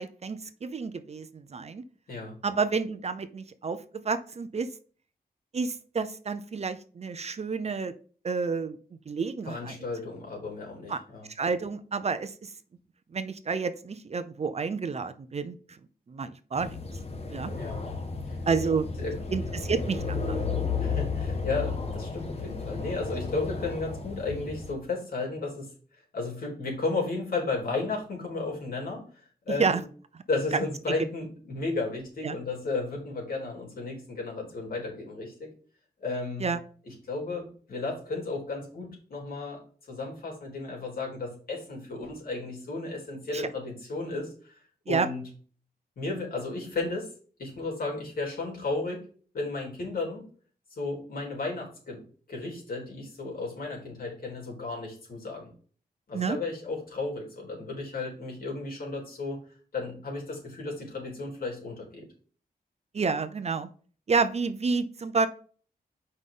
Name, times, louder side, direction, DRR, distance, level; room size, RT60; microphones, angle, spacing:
voice 1, 0.0-1.8 2.4-4.7 5.5-7.9 8.2-8.8 9.1-9.7 10.9-11.0 11.4-12.5 13.1-15.6 16.1-16.8 17.3-17.5 18.5-18.9 19.3-20.4 29.6-29.8 30.5-30.6 32.2-32.4 36.4-36.6 43.3-43.4 44.9-45.1 56.1-56.4 62.9-63.7 64.1-65.3, right 5 dB, 40° right, 12 dB, 0.6 m, -29 dB
voice 2, 9.5-11.3 17.5-17.8 18.3-18.7 19.0-19.6 20.8-25.7 26.1-29.9 30.3-35.5 36.0-36.5 36.9-39.6 39.9-44.5 44.9-45.2 46.0-47.1 47.4-49.1 49.3-50.2 50.8-52.0 52.3-55.5 56.1-59.4 59.7-62.0, left 3 dB, 65° left, -1 dB, 3.5 m, -34 dB
Traffic Highway (Listened from Under), 16.5-24.7, left 4 dB, 40° left, 1.3 m, -33 dB
8.0 x 5.4 x 3.8 m, 0.41 s
wide cardioid pair, 145°, 16 cm